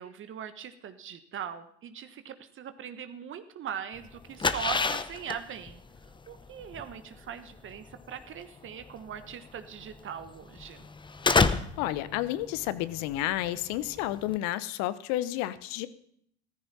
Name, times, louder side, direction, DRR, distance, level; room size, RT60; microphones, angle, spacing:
voice 1, 0.0-5.8 6.3-10.9, right 8 dB, 35° right, 10 dB, 1.2 m, -40 dB
sound 1, 4.0-14.4, left 4 dB, 15° left, 0.8 m, -31 dB
voice 2, 11.8-15.9, left 14 dB, 55° left, 16 dB, 1.0 m, -31 dB
14.5 x 14.0 x 4.2 m, 0.66 s
hypercardioid pair, 75°, 33 cm